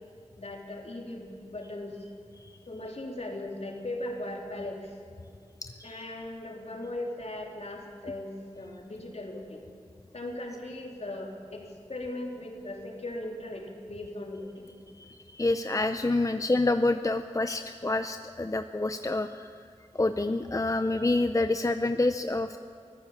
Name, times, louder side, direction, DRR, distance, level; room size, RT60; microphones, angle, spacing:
voice 1, 0.4-2.1 2.7-4.9 5.8-9.6 10.1-14.7 16.1-16.4, left 1 dB, 60° left, 0 dB, 3.6 m, -38 dB
voice 2, 5.6-6.0 15.0-19.5 19.9-22.6, left 2 dB, 25° left, 9 dB, 0.7 m, -28 dB
24.5 x 15.0 x 7.4 m, 2.3 s
wide cardioid pair, 50°, 12 cm